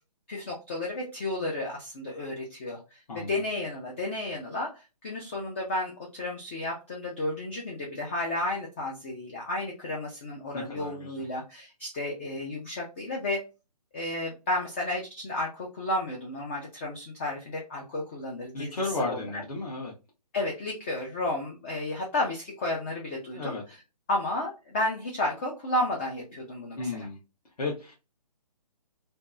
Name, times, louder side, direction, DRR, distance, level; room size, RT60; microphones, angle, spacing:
voice 1, 0.3-4.7 5.0-13.4 13.9-18.7 19.0-19.4 20.3-23.6 24.1-26.9, left 2 dB, 15° left, -1 dB, 0.4 m, -32 dB
voice 2, 3.1-3.4 10.5-11.2 18.5-19.9 23.3-23.6 26.8-27.2 27.6-27.9, left 3 dB, 65° left, -5 dB, 1.2 m, -33 dB
3.3 x 2.1 x 2.4 m, 0.28 s
figure-of-eight pair, 150°, 21 cm